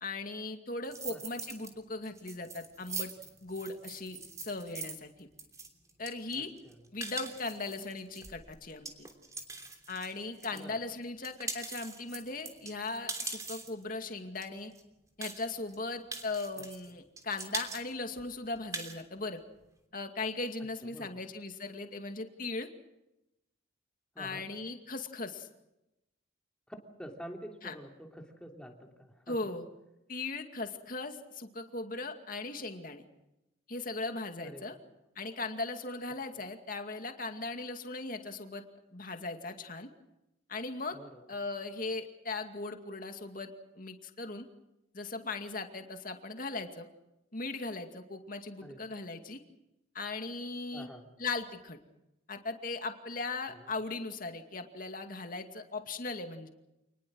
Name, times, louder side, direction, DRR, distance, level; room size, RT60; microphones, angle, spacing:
voice 1, 0.0-3.1 3.4-5.3 6.0-6.5 6.9-9.1 9.9-14.7 15.2-19.4 19.9-22.7 24.2-25.5 27.6-27.8 29.3-29.7 30.1-33.0 33.7-34.7 35.2-38.6 38.9-39.9 40.5-41.0 41.3-44.5 44.9-46.9 47.3-49.4 49.9-50.9 51.2-51.8 52.3-56.5, left 3 dB, 45° left, 6 dB, 2.3 m, -38 dB
sound 1, 0.8-1.7 2.0-10.6 11.0-13.8 14.4-14.5 14.7-14.8 15.2-15.7 16.1-16.9 17.2-17.8 18.2-18.3 18.5-19.0, right 3 dB, 15° right, 3.1 m, -42 dB
voice 2, 6.3-6.8 10.5-10.8 16.8-17.0 20.8-21.2 24.1-24.5 26.7-29.4 34.4-34.9 40.9-41.3 48.6-48.9 50.7-51.1 53.5-53.7, equal, 5° left, 2 dB, 3.1 m, -48 dB
28.0 x 20.5 x 6.3 m, 0.91 s
head